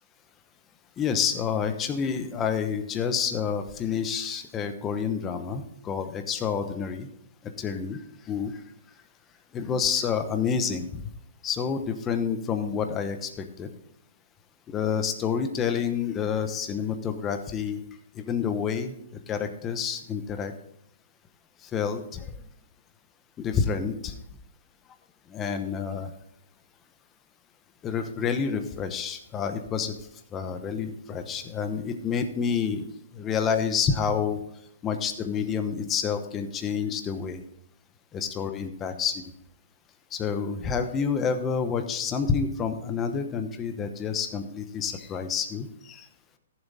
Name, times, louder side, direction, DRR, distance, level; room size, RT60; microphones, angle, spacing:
voice 1, 1.0-7.1 7.6-8.0 8.3-8.6 9.5-11.0 11.4-13.7 14.7-17.8 18.1-18.9 19.3-20.5 21.7-22.3 23.4-24.1 25.3-26.1 27.8-29.9 30.3-32.8 33.1-34.4 34.8-37.4 38.4-39.1 40.1-46.0, left 6 dB, 15° left, 8 dB, 0.9 m, -28 dB
13.5 x 7.4 x 4.1 m, 0.74 s
hypercardioid pair, 155°, 0 cm